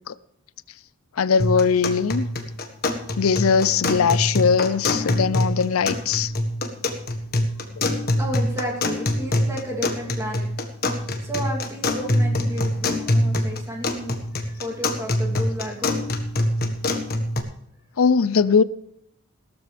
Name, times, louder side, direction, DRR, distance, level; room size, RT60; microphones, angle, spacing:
voice 1, 1.2-2.3 3.2-6.3 18.0-18.6, left 6 dB, 85° left, 17 dB, 0.5 m, -20 dB
sound 1, 1.4-17.4, left 1 dB, 45° left, 1.6 m, -25 dB
voice 2, 8.2-10.5 10.9-14.1 14.6-16.0, right 1 dB, 15° right, -1 dB, 3.0 m, -32 dB
17.5 x 13.0 x 3.4 m, 0.74 s
head